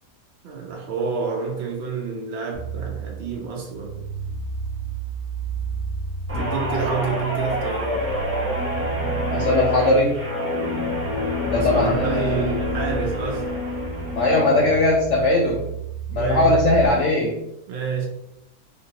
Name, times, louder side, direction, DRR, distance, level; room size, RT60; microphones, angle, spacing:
voice 1, 0.4-4.0 6.3-8.1 11.5-13.6 16.2-16.5 17.7-18.1, right 5 dB, 70° right, 0.6 m, -28 dB
sound 1, 2.5-16.9, right 5 dB, 25° right, 1.3 m, -32 dB
Guitar, 6.3-14.9 15.3-15.6, left 2 dB, 10° right, 0.7 m, -28 dB
voice 2, 9.0-10.2 11.5-12.5 14.1-15.6 16.1-17.4, left 2 dB, 75° left, 0.6 m, -20 dB
3.7 x 2.6 x 2.8 m
omnidirectional pair, 1.8 m